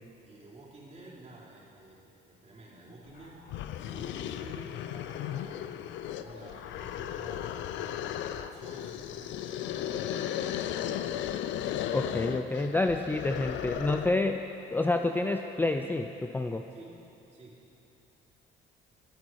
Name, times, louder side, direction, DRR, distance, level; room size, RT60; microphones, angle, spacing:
voice 1, 0.2-3.4 3.8-5.7 6.0-10.4 16.7-17.0 17.3-17.6, right 2 dB, 35° right, -5 dB, 3.8 m, -51 dB
sound 1, 2.8-7.3 8.0-8.8, left 1 dB, 45° left, 3.7 m, -58 dB
sound 2, 3.1-3.2 3.5-14.3, left 10 dB, 80° left, 0.5 m, -35 dB
voice 2, 11.9-14.4 14.7-16.7, left 2 dB, 10° left, 6 dB, 0.5 m, -28 dB
21.5 x 8.7 x 4.8 m, 2.8 s
cardioid pair, 100°, 19 cm